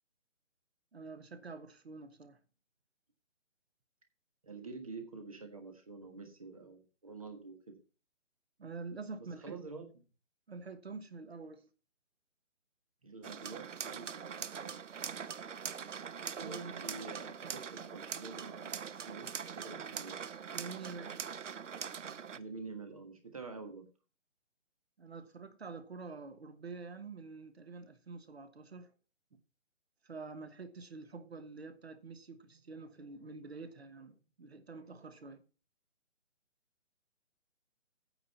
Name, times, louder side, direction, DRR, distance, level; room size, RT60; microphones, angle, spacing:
voice 1, 0.9-2.4 8.6-9.6 10.5-11.7 16.4-16.9 20.5-21.2 25.0-28.9 29.3-29.4 30.0-35.4, right 4 dB, 50° right, 1.3 m, -47 dB
voice 2, 4.4-7.8 9.2-9.9 13.0-14.8 16.3-20.2 22.3-23.9, right 3 dB, 25° right, 1.4 m, -47 dB
sound 1, 13.2-22.4, right 7 dB, 70° right, 0.8 m, -42 dB
9.2 x 4.8 x 7.0 m
hypercardioid pair, 175°, 39 cm